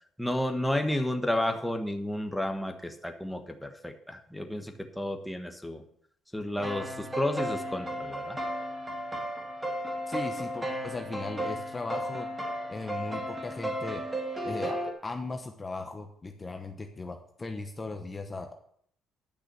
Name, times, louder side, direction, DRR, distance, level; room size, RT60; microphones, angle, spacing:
voice 1, 0.2-5.8 6.3-8.4, left 1 dB, ahead, 5 dB, 1.3 m, -31 dB
sound 1, 6.5-14.9, equal, 15° right, 2.0 m, -34 dB
voice 2, 10.1-12.3 12.7-14.0 14.4-18.5, left 3 dB, 20° left, 5 dB, 1.0 m, -37 dB
10.5 x 6.1 x 6.9 m, 0.65 s
cardioid pair, 110°, 0 cm